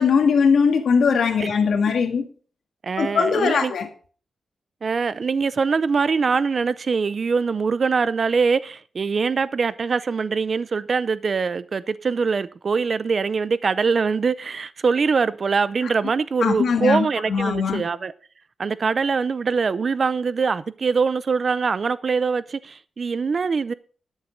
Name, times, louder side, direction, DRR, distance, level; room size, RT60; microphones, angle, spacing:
voice 1, 0.0-2.2 3.0-3.9 16.4-17.8, left 5 dB, 70° left, 1.8 m, -20 dB
voice 2, 2.8-3.7 4.8-18.1 18.6-23.7, right 5 dB, 40° right, 0.5 m, -23 dB
12.5 x 7.3 x 5.1 m
wide cardioid pair, 180°, 0 cm